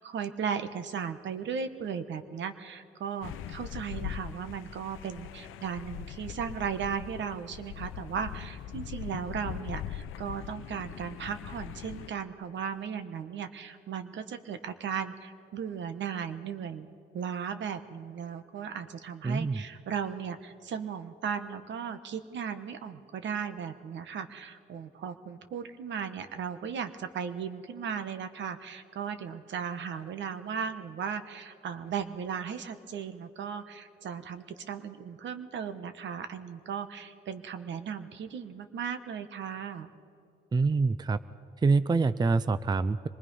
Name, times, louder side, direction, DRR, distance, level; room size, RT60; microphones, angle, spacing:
voice 1, 0.0-16.9 17.1-39.9, right 7 dB, 65° right, 10 dB, 1.3 m, -36 dB
sound 1, 3.2-12.1, left 11 dB, 85° left, 0.7 m, -41 dB
voice 2, 19.2-19.6 40.5-41.2 41.6-43.1, right 4 dB, 20° right, 14 dB, 0.5 m, -25 dB
25.0 x 20.0 x 5.5 m, 2.5 s
cardioid pair, 90°, 20 cm